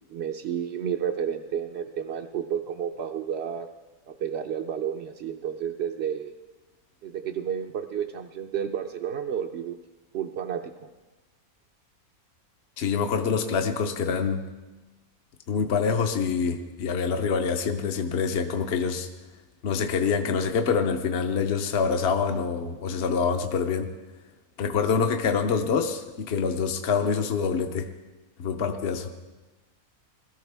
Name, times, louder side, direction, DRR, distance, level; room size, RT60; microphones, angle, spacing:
voice 1, 0.1-3.7 4.1-6.3 7.0-9.8 10.1-10.6, right 8 dB, 60° right, 3 dB, 0.7 m, -31 dB
voice 2, 12.8-14.4 15.5-19.1 19.6-23.9 24.6-27.9 28.4-29.1, left 5 dB, 55° left, 5 dB, 0.9 m, -26 dB
21.5 x 13.5 x 3.4 m, 1.2 s
omnidirectional pair, 1.5 m